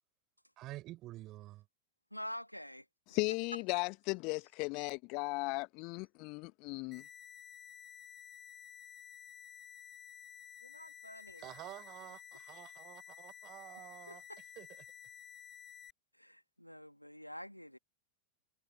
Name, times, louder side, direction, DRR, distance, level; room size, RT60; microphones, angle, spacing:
voice 1, 0.6-1.7 11.4-14.2 14.6-14.9, right 16 dB, 35° right, 4.3 m, -49 dB
voice 2, 2.1-2.9 10.6-11.4 14.1-14.4 16.2-17.8, equal, 90° left, 2.1 m, -47 dB
voice 3, 3.1-7.0, left 28 dB, 45° left, 1.2 m, -36 dB
sound 1, 6.9-15.9, left 8 dB, 25° left, 4.4 m, -53 dB
figure-of-eight pair, 90°, 0 cm